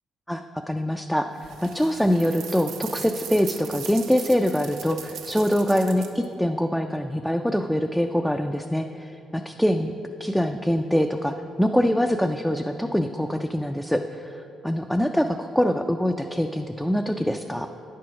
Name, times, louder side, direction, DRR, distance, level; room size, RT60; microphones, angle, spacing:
voice 1, 0.3-9.9 10.2-17.7, equal, ahead, 5 dB, 0.3 m, -24 dB
sound 1, 1.4-6.2, right 8 dB, 85° right, 0.6 m, -39 dB
9.1 x 4.6 x 6.1 m, 2.8 s
cardioid pair, 90°, 0 cm